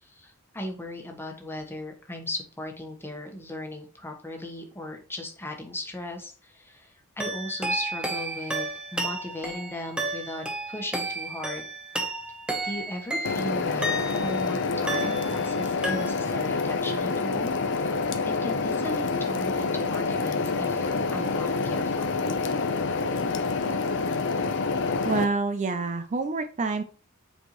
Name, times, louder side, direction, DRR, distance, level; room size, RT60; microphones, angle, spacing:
voice 1, 0.0-11.6 12.6-18.1 18.4-22.1 22.4-22.5, left 1 dB, 10° left, 2 dB, 1.2 m, -37 dB
sound 1, 7.2-14.4 14.9-15.6 15.8-16.5, right 1 dB, 5° right, 1.0 m, -32 dB
sound 2, 13.2-25.2, left 4 dB, 60° left, 0.7 m, -27 dB
voice 2, 25.0-26.8, right 3 dB, 35° right, 9 dB, 0.4 m, -27 dB
7.9 x 4.4 x 3.1 m, 0.37 s
head